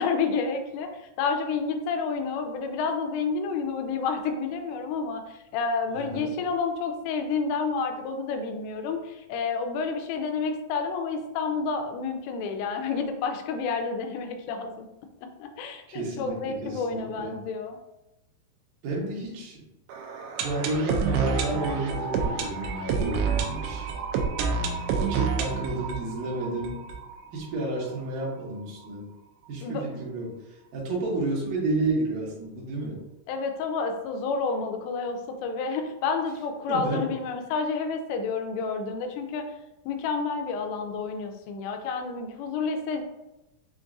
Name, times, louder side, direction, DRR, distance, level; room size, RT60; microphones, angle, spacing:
voice 1, 0.0-14.9 15.4-17.8 29.6-30.0 33.3-39.5 39.9-43.0, left 4 dB, 85° left, 5 dB, 2.8 m, -30 dB
voice 2, 5.9-6.3 15.9-17.3 18.8-19.6 20.4-23.9 25.0-26.8 27.3-29.0 29.5-30.4 30.7-33.0 36.7-37.1, right 2 dB, 65° right, -4 dB, 2.6 m, -31 dB
sound 1, 19.9-27.7 27.9-28.0 28.2-28.3 28.8-28.9, right 5 dB, 85° right, 2.7 m, -29 dB
7.1 x 2.6 x 2.5 m, 0.93 s
omnidirectional pair, 4.8 m